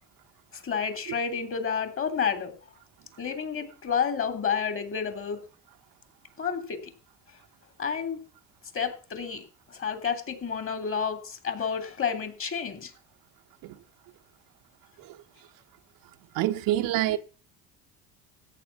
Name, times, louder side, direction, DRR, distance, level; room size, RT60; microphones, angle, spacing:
voice 1, 0.5-2.5 3.2-5.4 6.4-6.8 7.8-8.2 8.7-12.9, left 6 dB, 35° left, 3.2 m, -30 dB
voice 2, 16.3-17.2, right 14 dB, 70° right, 1.1 m, -26 dB
14.0 x 9.2 x 5.9 m
supercardioid pair, 90°, 35 cm